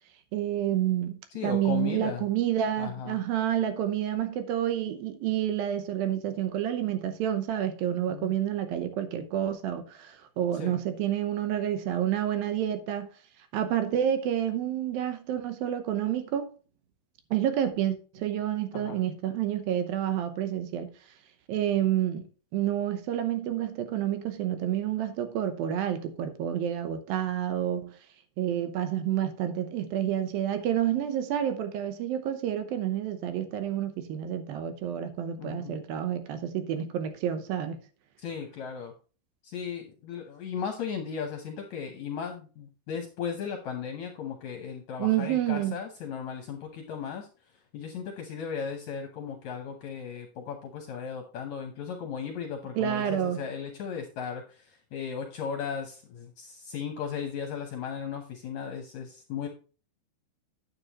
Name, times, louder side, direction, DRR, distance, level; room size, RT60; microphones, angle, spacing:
voice 1, 0.3-13.1 13.5-16.5 17.3-20.9 21.5-22.2 22.5-27.9 28.4-37.8 45.0-45.8 52.8-53.4, right 11 dB, 75° right, 2.6 m, -29 dB
voice 2, 1.3-2.2 2.8-3.2 8.1-8.3 10.6-10.7 18.7-19.0 35.4-35.8 38.2-38.9 39.4-47.3 47.7-54.4 54.9-59.5, left 7 dB, 70° left, 1.8 m, -36 dB
9.7 x 7.8 x 2.9 m
omnidirectional pair, 4.4 m